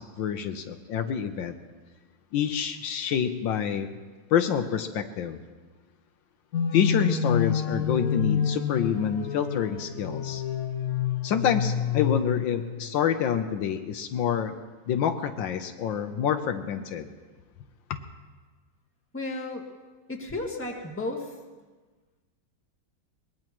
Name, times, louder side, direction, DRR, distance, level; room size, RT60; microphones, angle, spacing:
voice 1, 0.0-1.5 2.3-3.9 4.3-5.4 6.7-10.4 11.2-14.5 14.9-17.1, left 8 dB, 75° left, 8 dB, 1.5 m, -27 dB
sound 1, 6.5-12.7, left 7 dB, 55° left, 1.4 m, -28 dB
voice 2, 19.1-19.7 20.1-21.4, left 2 dB, 5° left, -1 dB, 1.6 m, -33 dB
23.0 x 20.5 x 3.0 m, 1.3 s
omnidirectional pair, 2.1 m